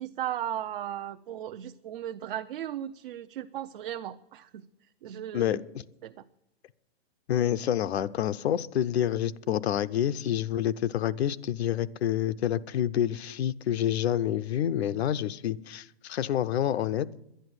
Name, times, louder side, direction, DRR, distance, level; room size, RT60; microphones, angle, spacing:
voice 1, 0.0-4.6 5.0-5.6 6.0-6.2, right 11 dB, 55° right, 0.6 m, -36 dB
voice 2, 7.3-17.1, left 11 dB, 80° left, 0.8 m, -28 dB
11.0 x 10.5 x 7.9 m
hypercardioid pair, 170°, 31 cm